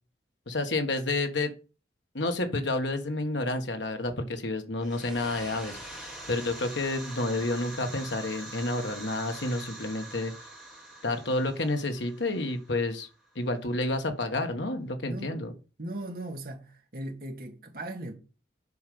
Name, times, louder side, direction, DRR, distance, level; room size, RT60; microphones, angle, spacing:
voice 1, 0.5-1.5 2.1-10.3 11.0-13.1 13.3-15.5, left 2 dB, 80° left, 1.4 m, -30 dB
sound 1, 4.8-13.3, right 1 dB, ahead, 3.4 m, -44 dB
voice 2, 15.0-15.4 15.8-18.1, right 1 dB, 55° right, 1.8 m, -38 dB
6.8 x 5.2 x 6.9 m
head